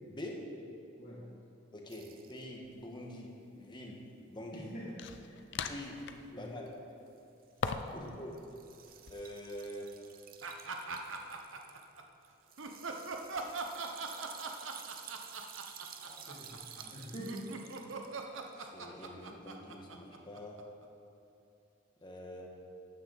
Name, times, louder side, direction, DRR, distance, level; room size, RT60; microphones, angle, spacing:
voice 1, 0.1-0.4 1.7-3.3 3.6-4.0 4.3-4.7 5.6-6.0 6.4-6.9 7.9-8.3 9.1-9.9 16.0-16.3 18.6-20.6 22.0-22.5, left 1 dB, 25° left, 0 dB, 1.4 m, -45 dB
voice 2, 1.0-1.3 4.5-5.4 6.3-6.6 7.9-8.1 16.1-17.5, equal, 40° left, -9 dB, 2.0 m, -46 dB
sound 1, 1.9-2.4 4.4-4.5 4.7-4.9 6.7-6.8 7.4-18.7, right 9 dB, 45° right, 0.7 m, -52 dB
sound 2, 2.6-2.8 5.0-6.3 7.6-8.1 8.4-9.2, left 5 dB, 60° left, 0.6 m, -40 dB
sound 3, 10.4-12.0 12.6-20.8, right 4 dB, 70° right, 0.9 m, -41 dB
13.5 x 9.6 x 4.0 m, 2.9 s
head